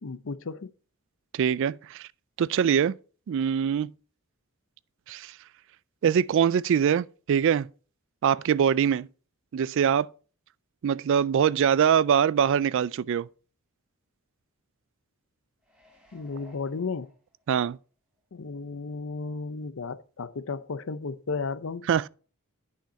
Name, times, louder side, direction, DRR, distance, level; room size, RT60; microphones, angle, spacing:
voice 1, 0.0-0.7 16.1-17.1 18.3-21.9, left 4 dB, 65° left, 0.6 m, -34 dB
voice 2, 1.3-2.1 2.4-2.9 3.3-3.9 5.1-5.3 6.0-7.7 8.2-9.1 9.5-10.1 10.8-13.3 17.5-17.8 21.9-22.1, right 8 dB, 60° right, 0.3 m, -23 dB
sound 1, 15.6-17.7 18.2-18.3, left 1 dB, 5° right, 2.2 m, -57 dB
10.5 x 5.8 x 4.1 m
head